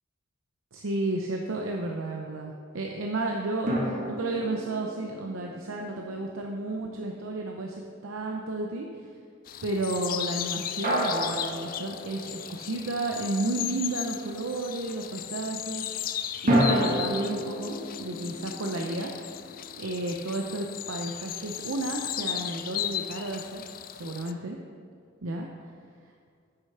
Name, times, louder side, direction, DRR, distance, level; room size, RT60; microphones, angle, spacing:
voice 1, 0.7-9.1 9.6-16.1 16.4-19.1 19.8-23.6 23.9-24.6 25.2-25.7, right 2 dB, 85° right, 1 dB, 0.7 m, -32 dB
sound 1, 3.7-7.0 10.8-12.8 16.5-19.6, equal, 45° right, 1.8 m, -30 dB
sound 2, 9.5-24.3, left 11 dB, 45° left, 0.4 m, -36 dB
8.2 x 6.8 x 5.6 m, 2.2 s
head